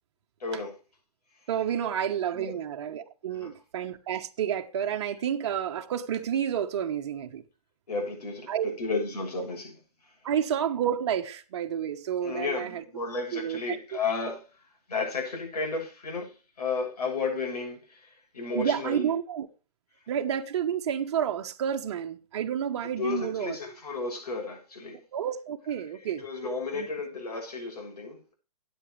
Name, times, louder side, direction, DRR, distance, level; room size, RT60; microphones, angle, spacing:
voice 1, 0.4-0.8 2.3-2.6 3.3-3.5 7.9-9.7 12.2-14.4 14.9-16.3 16.6-19.1 23.0-25.0 26.0-28.2, left 4 dB, 80° left, 7.0 m, -33 dB
voice 2, 1.5-7.4 8.5-8.7 9.4-9.5 10.2-12.8 13.3-13.8 18.5-19.5 20.1-23.6 25.1-26.2 26.7-26.9, right 9 dB, 45° right, 1.1 m, -30 dB
14.5 x 9.1 x 3.2 m
hypercardioid pair, 160°, 20 cm